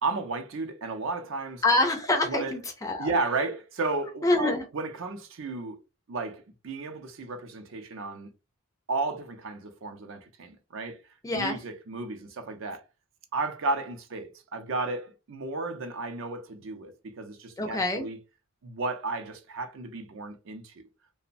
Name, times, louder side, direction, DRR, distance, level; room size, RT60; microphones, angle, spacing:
voice 1, 0.0-1.6 2.2-2.5 3.0-5.8 6.1-8.3 8.9-11.0 11.3-12.8 13.3-18.2 18.6-20.8, right 3 dB, 60° right, 0.5 m, -33 dB
voice 2, 1.6-3.1 4.2-4.6 11.2-11.6 17.6-18.1, left 2 dB, 15° left, 0.3 m, -26 dB
2.9 x 2.0 x 2.5 m
head